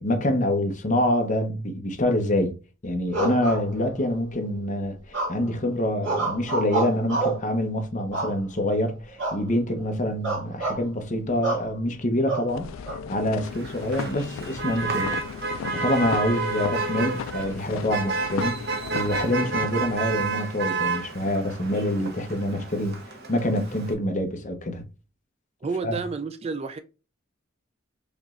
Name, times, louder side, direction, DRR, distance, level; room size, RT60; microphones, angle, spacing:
voice 1, 0.0-2.5 2.8-12.7 13.1-15.2 15.7-23.0 23.3-24.8 25.8-26.0, left 1 dB, 40° left, 0.8 m, -26 dB
sound 1, 3.1-4.1 5.1-5.6 6.0-7.5 8.1-8.7 9.2-9.4 9.7-9.9 10.2-10.8 11.4-11.7 12.3-13.0, right 3 dB, 70° right, 2.2 m, -28 dB
sound 2, 12.5-20.3, left 7 dB, 85° left, 0.3 m, -36 dB
Motor vehicle (road), 13.4-23.9, right 4 dB, 55° right, 0.9 m, -30 dB
voice 2, 25.6-26.8, right 4 dB, 30° right, 0.3 m, -30 dB
5.2 x 3.0 x 2.5 m
head